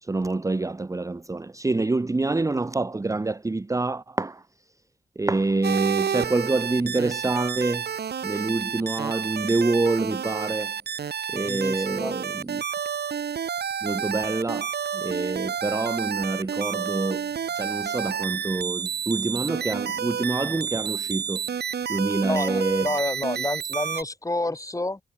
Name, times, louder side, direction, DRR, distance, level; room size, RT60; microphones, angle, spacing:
voice 1, 0.0-4.4 5.2-7.9 8.2-10.7 11.1-12.6 13.8-17.3 17.5-21.4 21.9-22.9 23.3-23.5, right 3 dB, 20° right, 0.8 m, -26 dB
sound 1, 5.6-24.0, right 7 dB, 85° right, 1.5 m, -30 dB
voice 2, 11.3-12.1 22.3-25.0, left 2 dB, 20° left, 7.9 m, -29 dB
wide cardioid pair, 115°, 17 cm